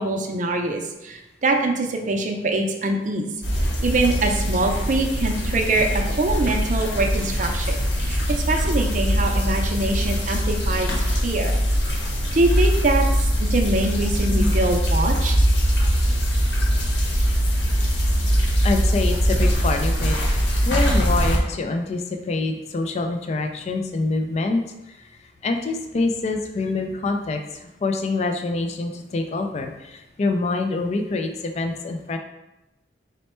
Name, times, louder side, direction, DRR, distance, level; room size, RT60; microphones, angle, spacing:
voice 1, 0.0-3.3 3.8-10.9 11.2-11.5 12.3-15.4, right 2 dB, 45° right, 3 dB, 0.5 m, -24 dB
sound 1, 3.4-21.4, equal, 85° left, 1.0 m, -22 dB
voice 2, 18.6-24.6 24.9-32.2, left 3 dB, 40° left, 5 dB, 0.3 m, -26 dB
4.2 x 2.2 x 4.2 m, 0.95 s
head